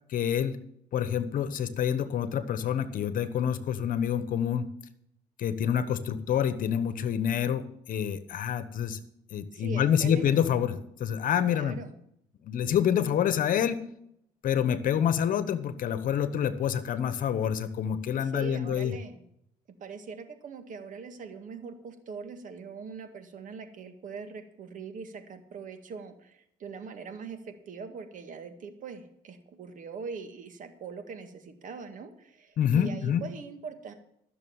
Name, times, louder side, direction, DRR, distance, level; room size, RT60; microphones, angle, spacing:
voice 1, 0.1-0.6 0.9-4.7 5.4-9.0 9.3-11.8 12.4-13.8 14.4-18.9 32.6-33.2, left 9 dB, 65° left, 13 dB, 1.1 m, -27 dB
voice 2, 9.5-10.3 11.5-12.0 18.2-19.2 19.8-33.9, right 5 dB, 60° right, 7 dB, 1.9 m, -42 dB
14.5 x 6.8 x 7.2 m, 0.73 s
cardioid pair, 85°, 15 cm